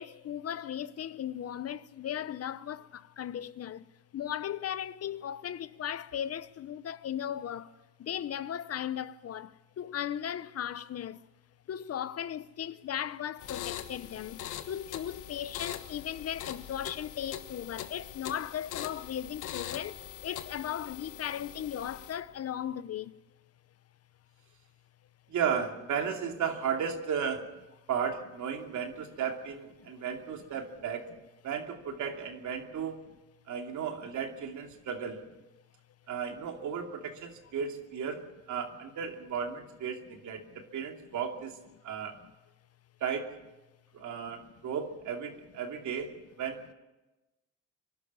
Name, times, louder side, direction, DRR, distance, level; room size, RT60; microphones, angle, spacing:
voice 1, 0.0-2.8 3.2-3.8 4.1-7.7 8.0-9.5 9.8-11.2 11.7-14.4 14.7-19.9 20.2-23.1, left 10 dB, 55° left, 0.8 m, -37 dB
sound 1, 13.4-22.3, left 11 dB, 85° left, 1.3 m, -42 dB
voice 2, 25.3-27.5 27.9-31.1 31.4-33.0 33.5-35.2 36.1-38.2 38.5-40.4 40.7-41.6 41.8-42.1 43.0-43.4 43.9-46.1 46.4-46.6, right 7 dB, 75° right, 2.7 m, -34 dB
25.0 x 12.0 x 9.6 m
cardioid pair, 90°, 30 cm